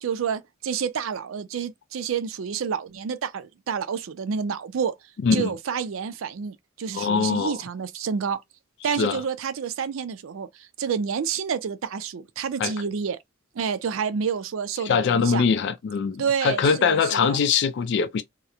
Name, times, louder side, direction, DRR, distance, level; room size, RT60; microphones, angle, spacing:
voice 1, 0.0-4.9 5.3-8.4 8.8-13.2 13.6-15.5 16.2-17.4, right 6 dB, 80° right, 0.4 m, -29 dB
voice 2, 6.9-7.6 8.9-9.2 12.6-12.7 14.9-18.2, left 6 dB, 60° left, 0.3 m, -22 dB
2.8 x 2.0 x 2.3 m
head